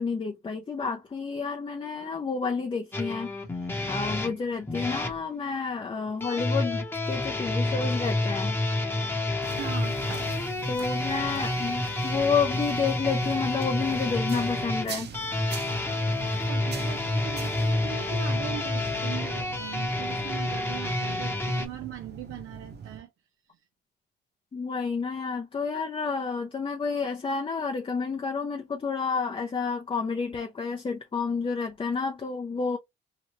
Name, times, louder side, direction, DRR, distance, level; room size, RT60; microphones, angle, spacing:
voice 1, 0.0-8.6 10.7-15.1 24.5-32.8, left 5 dB, 25° left, 0.6 m, -30 dB
sound 1, 2.9-5.2 6.2-21.6, left 2 dB, 10° left, 0.9 m, -29 dB
voice 2, 9.2-10.3 10.8-10.9 16.5-23.1, right 12 dB, 85° right, 0.5 m, -40 dB
sound 2, 9.4-23.0, right 6 dB, 55° right, 0.9 m, -43 dB
2.8 x 2.3 x 3.0 m
cardioid pair, 90°, 20 cm